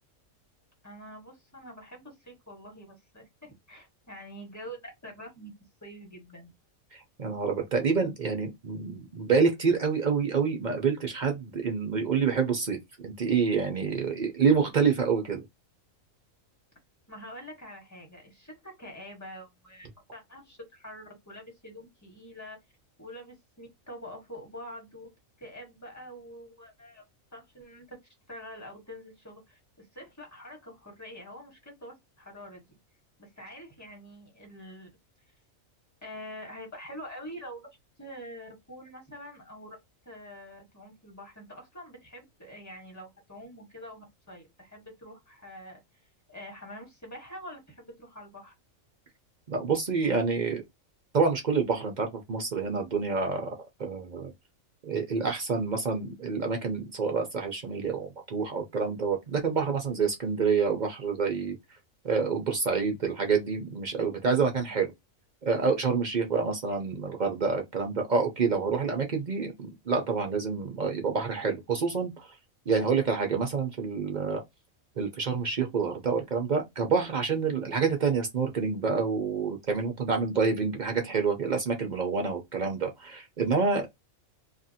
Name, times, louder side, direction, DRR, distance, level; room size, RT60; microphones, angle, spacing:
voice 1, 0.8-5.5 5.8-6.5 17.1-22.6 23.0-25.1 25.4-27.0 27.3-28.0 28.3-32.6 33.2-34.9 36.0-37.7 38.0-39.8 40.0-45.8 46.3-48.5 64.6-64.8 80.9-81.2, equal, 15° left, 1.1 m, -45 dB
voice 2, 6.9-15.4 49.5-50.6 51.1-53.5 53.8-54.3 54.8-61.5 62.0-64.9 65.4-72.3 72.7-74.4 75.0-83.9, right 5 dB, 55° right, 0.5 m, -27 dB
2.7 x 2.5 x 2.7 m
omnidirectional pair, 1.4 m